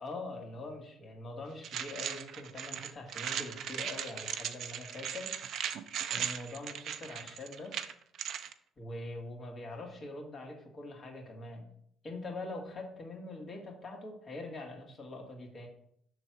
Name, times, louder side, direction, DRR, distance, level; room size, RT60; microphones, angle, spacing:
voice 1, 0.0-5.3 6.1-7.8 8.8-11.7 12.0-15.7, left 2 dB, 50° left, 1 dB, 2.2 m, -43 dB
sound 1, 1.6-8.5, right 9 dB, 65° right, 0.5 m, -38 dB
6.2 x 3.9 x 5.9 m, 0.67 s
hypercardioid pair, 55°, 0 cm